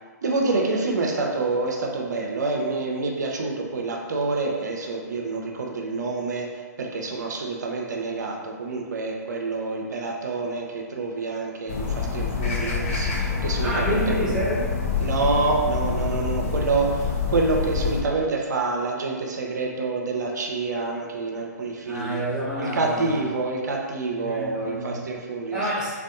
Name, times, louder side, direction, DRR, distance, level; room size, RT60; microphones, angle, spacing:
voice 1, 0.2-14.2 15.0-22.2 22.6-25.6, right 3 dB, 70° right, 0 dB, 0.5 m, -27 dB
sound 1, 11.7-18.0, left 5 dB, 45° left, 0.4 m, -26 dB
voice 2, 13.6-14.7 21.9-23.3 24.1-25.1 25.5-26.0, right 1 dB, 5° right, -10 dB, 0.8 m, -28 dB
2.5 x 2.2 x 2.4 m, 1.6 s
figure-of-eight pair, 125°, 10 cm